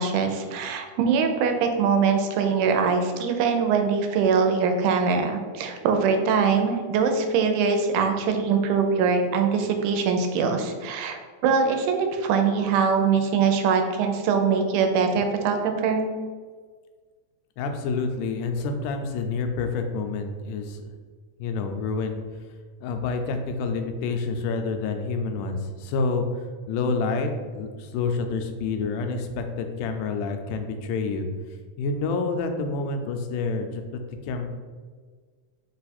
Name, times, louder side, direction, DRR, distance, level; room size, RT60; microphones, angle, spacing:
voice 1, 0.0-16.1, right 5 dB, 85° right, 5 dB, 2.1 m, -23 dB
voice 2, 17.6-20.8 21.4-22.2 22.8-26.2 26.7-31.3 31.8-34.5, left 4 dB, 90° left, 5 dB, 2.1 m, -28 dB
4.9 x 2.3 x 4.1 m, 1.5 s
omnidirectional pair, 3.6 m